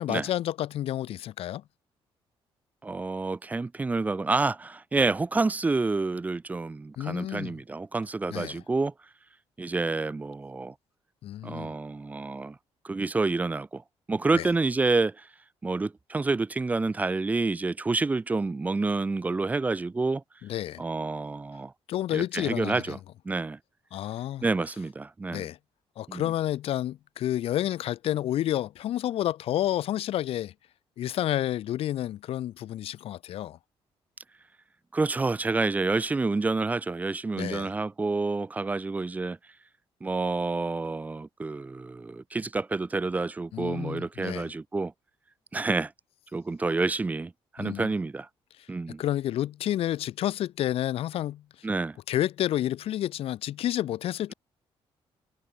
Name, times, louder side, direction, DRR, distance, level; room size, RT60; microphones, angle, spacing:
voice 1, 0.0-1.6 7.0-7.5 8.3-8.6 11.2-11.7 14.3-14.5 20.4-20.8 21.9-23.0 23.9-24.4 25.3-25.6 26.0-30.5 31.0-33.6 37.4-37.7 43.5-44.5 47.6-47.9 49.0-51.4 52.1-54.3, left 12 dB, 70° left, 0.5 m, -30 dB
voice 2, 2.8-8.9 9.6-10.7 11.4-12.6 12.8-13.8 14.1-15.3 15.6-20.2 20.8-21.7 22.1-23.0 23.2-23.6 24.4-25.5 26.1-26.3 34.9-39.4 40.0-44.9 45.5-45.9 46.3-48.3 48.7-49.0 51.6-52.0, right 3 dB, 15° right, 0.3 m, -28 dB
cardioid pair, 105°, 10 cm